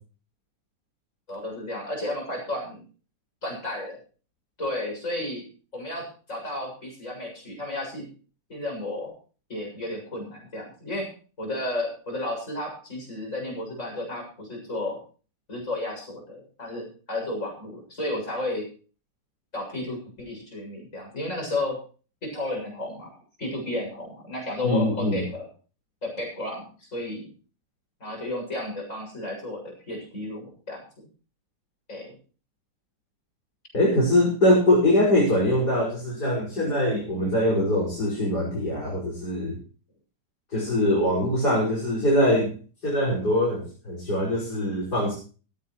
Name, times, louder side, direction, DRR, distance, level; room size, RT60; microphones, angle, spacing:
voice 1, 1.3-2.8 3.4-4.0 4.6-5.4 5.7-8.1 8.5-9.1 9.5-11.1 11.4-15.0 15.5-18.7 19.5-21.8 22.2-25.5 26.0-27.3 28.0-30.8 31.9-32.2, left 1 dB, 45° left, 1 dB, 7.6 m, -33 dB
voice 2, 24.6-25.2 33.7-39.6 40.5-42.5 42.8-45.1, left 1 dB, 65° left, -5 dB, 6.3 m, -23 dB
17.0 x 16.5 x 3.2 m, 0.38 s
omnidirectional pair, 1.8 m